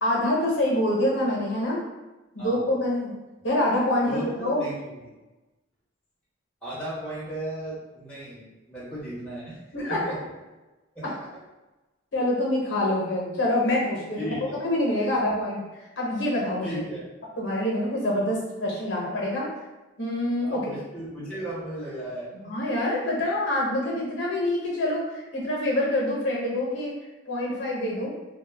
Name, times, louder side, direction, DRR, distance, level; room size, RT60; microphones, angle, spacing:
voice 1, 0.0-1.8 2.3-3.1 3.4-4.7 9.7-10.0 12.1-15.6 16.0-16.8 17.4-19.5 20.0-20.7 22.4-27.0 27.3-28.1, left 1 dB, 70° left, -4 dB, 0.7 m, -26 dB
voice 2, 4.0-5.1 6.6-10.2 10.9-11.2 14.2-14.5 15.0-15.1 16.6-17.0 20.4-22.5, right 1 dB, 5° left, -9 dB, 0.8 m, -36 dB
2.2 x 2.1 x 3.3 m, 1.1 s
head